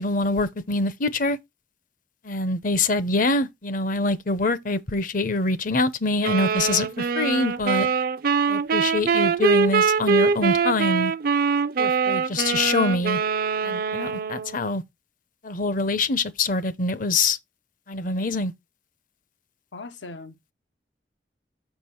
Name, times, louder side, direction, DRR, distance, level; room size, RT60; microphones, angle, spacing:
voice 1, 0.0-1.4 2.2-7.9 8.5-11.1 11.8-13.2 13.6-14.8 15.4-17.4 17.9-18.5, left 3 dB, 50° left, 0.8 m, -25 dB
sound 1, 6.2-14.6, right 5 dB, 50° right, 0.5 m, -23 dB
voice 2, 19.7-20.5, left 3 dB, 85° left, 1.0 m, -40 dB
6.7 x 5.9 x 4.4 m
head